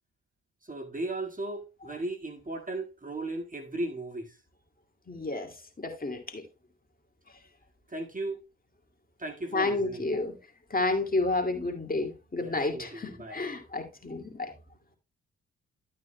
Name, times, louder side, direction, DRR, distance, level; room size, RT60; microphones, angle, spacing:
voice 1, 0.6-4.4 7.9-8.4 9.2-10.1 12.4-13.4, right 2 dB, 25° right, 1.9 m, -36 dB
voice 2, 5.1-6.4 9.5-10.3 10.7-14.5, left 2 dB, 25° left, 2.3 m, -30 dB
12.0 x 8.7 x 2.2 m
hypercardioid pair, 40°, 33 cm